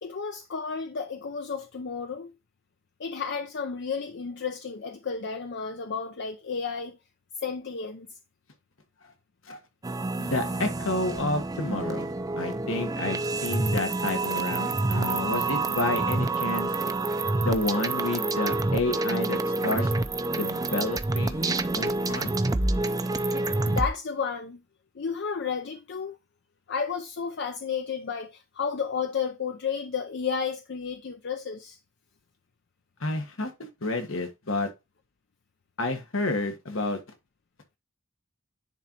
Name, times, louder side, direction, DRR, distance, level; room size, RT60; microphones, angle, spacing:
voice 1, 0.0-2.3 3.0-7.0 7.4-8.1 23.2-24.6 25.0-26.2 26.7-31.8, left 6 dB, 60° left, 0.5 m, -32 dB
sound 1, 9.8-23.9, right 2 dB, 20° right, 0.5 m, -28 dB
voice 2, 10.2-16.7 17.4-19.9 20.3-22.3 33.0-34.7 35.8-37.0, left 2 dB, 80° left, 1.5 m, -30 dB
10.0 x 3.9 x 2.9 m
head